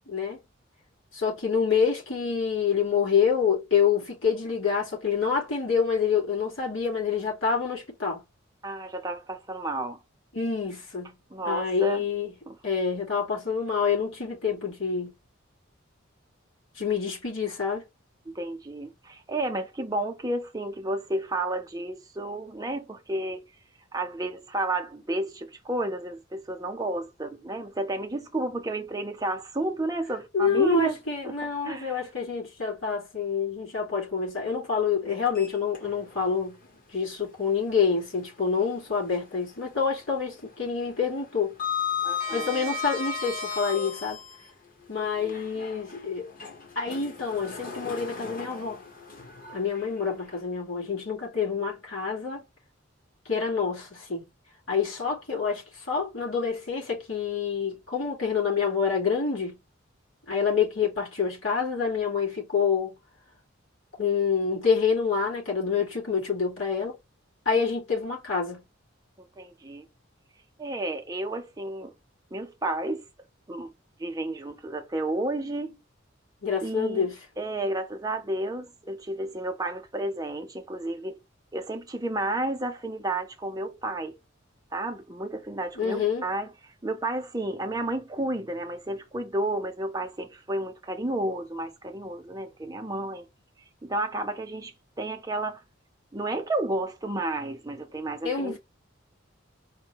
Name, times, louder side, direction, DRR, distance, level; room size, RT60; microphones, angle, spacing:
voice 1, 0.1-0.4 1.1-8.2 10.3-11.1 11.4-12.3 12.6-15.1 16.7-17.8 30.3-36.6 36.9-41.5 42.3-44.2 44.9-46.3 46.7-48.8 49.5-52.4 53.2-54.2 54.7-59.6 60.3-62.9 64.0-67.0 67.4-68.6 76.4-77.2 85.7-86.3 98.2-98.6, left 6 dB, 80° left, 3.2 m, -27 dB
voice 2, 8.6-10.0 11.3-12.0 12.5-12.6 18.3-23.5 23.9-31.0 31.2-32.0 42.0-42.7 45.2-45.3 69.2-69.9 70.6-71.9 72.3-73.0 73.5-73.7 74.0-75.8 76.6-77.1 77.4-81.2 81.5-84.2 84.7-93.3 93.8-95.6 96.1-98.6, right 2 dB, 20° right, 0.6 m, -31 dB
Sliding door, 35.3-36.2 36.6-36.7 38.4-39.5 39.8-40.1 40.4-44.5 45.2-50.4, left 6 dB, 45° left, 1.1 m, -35 dB
4.4 x 2.1 x 4.7 m
head